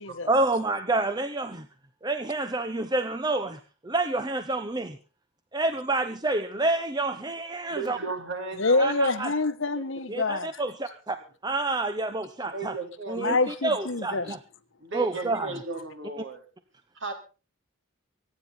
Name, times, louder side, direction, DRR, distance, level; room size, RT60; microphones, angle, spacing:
voice 1, 0.3-1.7 2.0-5.0 5.5-8.0 8.8-9.3 10.1-11.2 11.4-12.7 13.1-14.4 14.9-15.5, right 2 dB, 20° right, 0.8 m, -28 dB
voice 2, 7.7-8.9 12.5-13.4 14.8-16.4 16.9-17.1, right 3 dB, 60° right, 4.2 m, -35 dB
voice 3, 8.6-10.6 13.2-14.3, left 3 dB, 60° left, 1.1 m, -26 dB
24.5 x 9.7 x 4.3 m
head